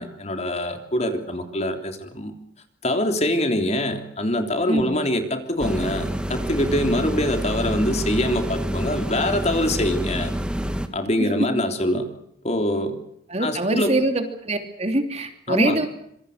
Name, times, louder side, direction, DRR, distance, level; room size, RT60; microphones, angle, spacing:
voice 1, 0.0-2.3 2.8-10.3 10.9-12.1 12.4-13.0 13.4-13.9 15.5-15.8, left 1 dB, 35° left, 6 dB, 3.4 m, -24 dB
voice 2, 4.7-5.0 11.2-11.3 13.3-15.9, right 2 dB, 35° right, 7 dB, 3.1 m, -24 dB
sound 1, 5.6-10.9, equal, 5° right, 1.9 m, -27 dB
26.0 x 24.5 x 6.6 m, 0.74 s
head